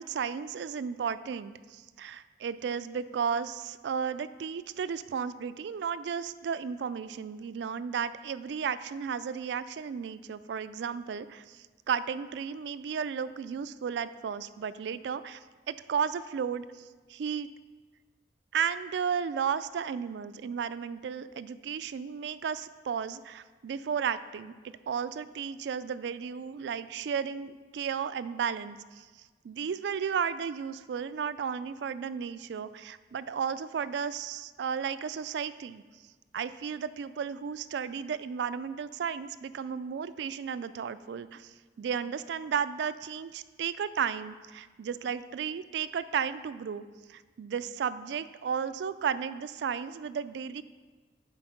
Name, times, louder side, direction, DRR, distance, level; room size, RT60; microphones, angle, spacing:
voice 1, 0.0-15.4 15.7-17.5 18.5-29.1 29.4-35.8 36.3-46.8 47.1-50.6, right 7 dB, 70° right, 14 dB, 0.3 m, -34 dB
7.7 x 4.5 x 5.7 m, 1.4 s
head